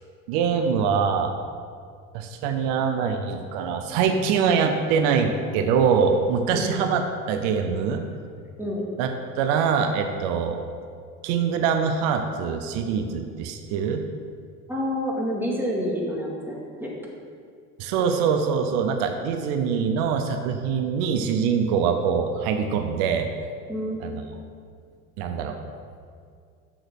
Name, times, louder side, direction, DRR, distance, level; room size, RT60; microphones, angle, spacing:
voice 1, 0.3-1.3 2.1-7.0 7.3-8.0 9.0-9.1 9.4-10.6 11.2-14.0 17.8-23.3 24.0-24.2 25.2-25.6, right 6 dB, 80° right, 6 dB, 0.8 m, -23 dB
voice 2, 14.7-16.9 23.7-24.0, equal, 5° right, -3 dB, 2.2 m, -28 dB
6.9 x 6.2 x 6.3 m, 2.2 s
supercardioid pair, 100°, 34 cm